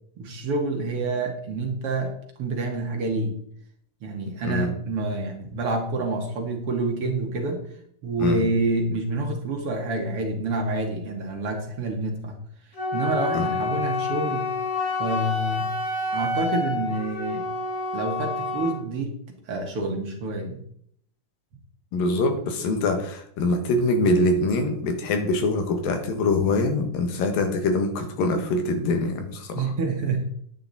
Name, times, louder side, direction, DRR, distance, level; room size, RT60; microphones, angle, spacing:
voice 1, 0.2-2.1 2.4-3.4 4.0-7.6 8.0-12.4 12.9-14.5 15.0-15.7 16.1-17.5 17.9-19.2 19.5-20.6 29.5-30.3, right 2 dB, 55° right, 2 dB, 1.9 m, -27 dB
Wind instrument woodwind instrument, 12.7-18.8, left 3 dB, 45° left, 2.9 m, -28 dB
voice 2, 21.9-29.7, left 2 dB, 80° left, 6 dB, 3.2 m, -24 dB
10.0 x 9.0 x 4.0 m, 0.66 s
omnidirectional pair, 4.0 m